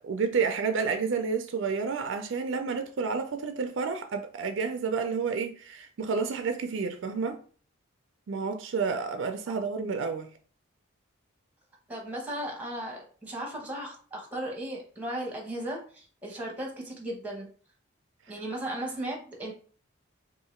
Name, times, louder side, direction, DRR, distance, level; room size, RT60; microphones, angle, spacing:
voice 1, 0.0-7.4 8.3-10.3, right 5 dB, 60° right, 0.4 m, -30 dB
voice 2, 11.9-17.5 18.3-19.5, right 1 dB, 5° right, 0.9 m, -36 dB
2.8 x 2.6 x 4.3 m
head